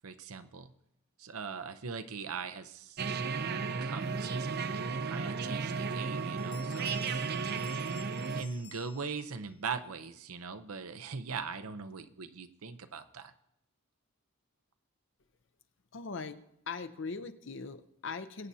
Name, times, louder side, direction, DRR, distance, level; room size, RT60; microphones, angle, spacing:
voice 1, 0.0-0.7 1.2-3.2 3.8-4.7 5.0-6.9 8.4-13.3, right 5 dB, 85° right, 11 dB, 0.7 m, -40 dB
sound 1, 3.0-8.4, right 4 dB, 45° right, 0.5 m, -34 dB
Bell, 6.4-9.5, left 8 dB, 90° left, 1.0 m, -54 dB
voice 2, 15.9-18.5, left 4 dB, 55° left, 10 dB, 0.7 m, -40 dB
22.0 x 8.6 x 2.8 m, 0.81 s
head